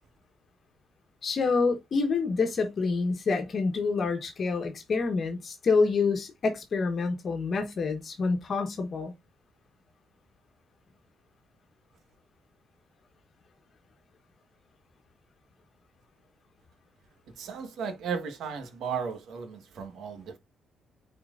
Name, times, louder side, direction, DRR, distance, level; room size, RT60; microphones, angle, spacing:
voice 1, 1.2-9.1, left 4 dB, 50° left, 1.3 m, -27 dB
voice 2, 17.4-20.4, right 6 dB, 75° right, 1.5 m, -35 dB
8.7 x 4.5 x 2.5 m
cardioid pair, 90°, 0 cm